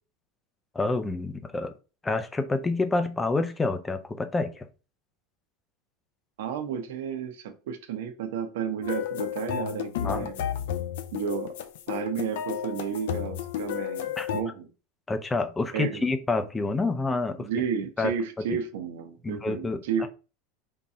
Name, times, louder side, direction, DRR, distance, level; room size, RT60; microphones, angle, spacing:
voice 1, 0.7-1.7 2.0-4.7 10.0-10.3 14.2-14.3 15.1-17.5 18.0-18.1 19.2-20.1, left 3 dB, 10° left, 0.5 m, -28 dB
voice 2, 6.4-10.4 11.1-11.5 11.9-14.7 15.7-16.1 17.4-20.1, right 7 dB, 85° right, 0.9 m, -32 dB
sound 1, 8.8-14.4, left 10 dB, 80° left, 0.6 m, -32 dB
3.8 x 2.8 x 4.8 m
supercardioid pair, 150°, 0 cm